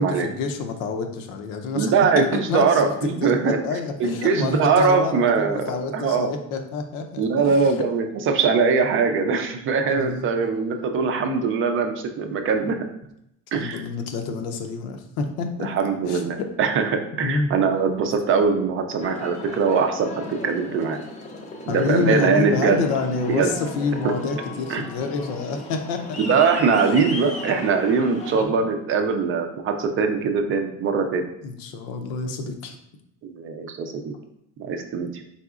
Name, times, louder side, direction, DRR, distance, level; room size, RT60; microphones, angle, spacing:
voice 1, 0.0-1.9 2.3-7.9 9.9-10.3 13.5-15.7 16.1-16.5 17.2-17.5 21.7-26.4 26.7-27.0 28.3-28.6 31.4-32.8, left 4 dB, 80° left, 5 dB, 0.7 m, -28 dB
voice 2, 1.7-3.6 4.0-6.3 7.2-12.8 13.5-13.8 15.6-21.0 21.7-22.8 23.3-23.5 24.7-24.8 26.2-31.3 33.2-34.1 34.6-35.2, right 5 dB, 40° right, 5 dB, 0.4 m, -22 dB
Aircraft, 19.0-28.4, left 2 dB, 20° left, 0.5 m, -36 dB
4.1 x 3.8 x 2.4 m, 0.79 s
cardioid pair, 140°, 34 cm